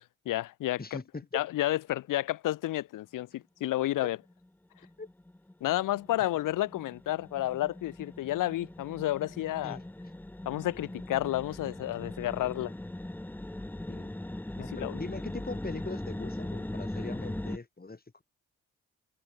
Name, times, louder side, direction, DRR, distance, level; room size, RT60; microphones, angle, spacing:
voice 1, 0.0-0.8 1.3-4.2 5.6-9.8 10.4-12.7 14.6-15.0, left 15 dB, 80° left, 1.4 m, -31 dB
voice 2, 0.8-1.4 5.0-5.1 9.6-9.8 13.9-14.1 14.6-18.2, left 3 dB, 30° left, 6.4 m, -40 dB
sound 1, 4.3-4.5 4.8-17.6, left 1 dB, 5° left, 0.7 m, -40 dB
supercardioid pair, 50°, 31 cm